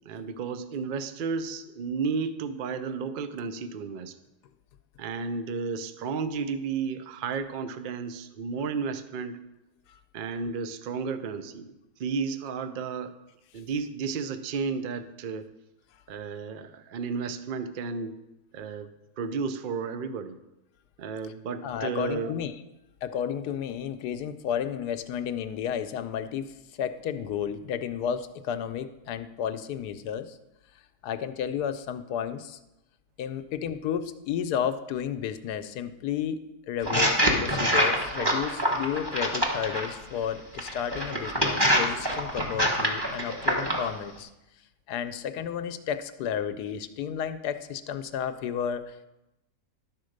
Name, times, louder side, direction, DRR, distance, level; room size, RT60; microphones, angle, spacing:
voice 1, 0.1-4.2 5.0-9.4 10.1-11.7 12.0-13.1 13.5-15.5 16.1-18.2 18.5-20.4 21.0-22.3, right 5 dB, 65° right, 11 dB, 0.5 m, -33 dB
voice 2, 21.6-22.5 23.0-30.4 31.0-32.6 33.2-44.3 44.9-49.0, left 8 dB, 85° left, 10 dB, 1.2 m, -32 dB
sound 1, 36.8-39.9 40.6-43.9, equal, 15° right, 1.2 m, -25 dB
11.5 x 4.4 x 6.4 m, 0.94 s
omnidirectional pair, 1.7 m